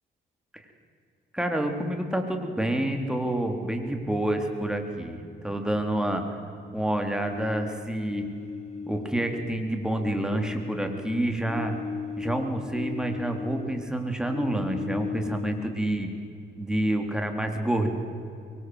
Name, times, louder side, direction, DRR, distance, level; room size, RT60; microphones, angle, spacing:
voice 1, 1.3-6.2 6.7-8.3 8.9-11.7 12.2-16.1 16.6-17.9, right 1 dB, 5° right, 4 dB, 3.8 m, -28 dB
sound 1, 7.1-9.6 9.9-13.8 14.2-15.9, left 5 dB, 35° left, 1.8 m, -37 dB
24.5 x 23.5 x 8.1 m, 2.5 s
cardioid pair, 90°, 20 cm